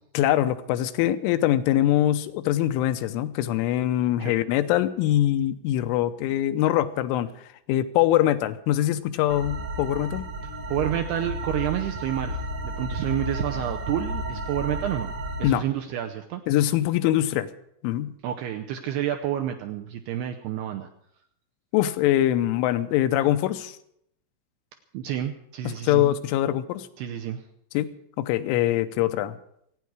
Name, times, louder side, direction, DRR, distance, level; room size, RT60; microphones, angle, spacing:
voice 1, 0.1-7.3 7.7-10.3 15.4-15.6 16.5-17.5 17.8-18.2 21.7-23.8 25.7-26.9 27.7-29.4, left 13 dB, 85° left, 10 dB, 3.2 m, -23 dB
sound 1, 9.3-15.5, right 1 dB, 60° right, 1.5 m, -32 dB
voice 2, 10.7-15.1 15.4-16.4 18.2-20.9 24.9-26.1 27.0-27.4, right 11 dB, 80° right, 4 dB, 2.4 m, -29 dB
27.0 x 9.4 x 4.8 m, 0.73 s
omnidirectional pair, 5.5 m